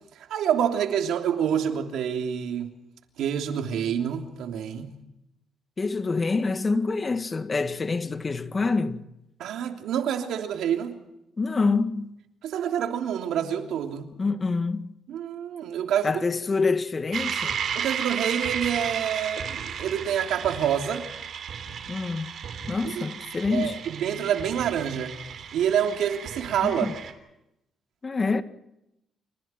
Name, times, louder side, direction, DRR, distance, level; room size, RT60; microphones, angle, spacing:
voice 1, 0.3-2.7 3.2-4.9 9.4-11.0 12.4-14.1 15.1-16.2 17.7-21.1 22.8-23.1 23.5-25.2 25.5-26.9, right 9 dB, 80° right, 3.1 m, -27 dB
voice 2, 5.8-9.0 11.4-12.2 14.2-14.9 16.0-17.6 21.9-22.3 22.7-23.8 26.6-26.9 28.0-28.4, left 4 dB, 30° left, 2.0 m, -26 dB
sound 1, 17.1-27.1, right 7 dB, 65° right, 3.2 m, -34 dB
29.0 x 28.5 x 4.5 m
cardioid pair, 90°, 0 cm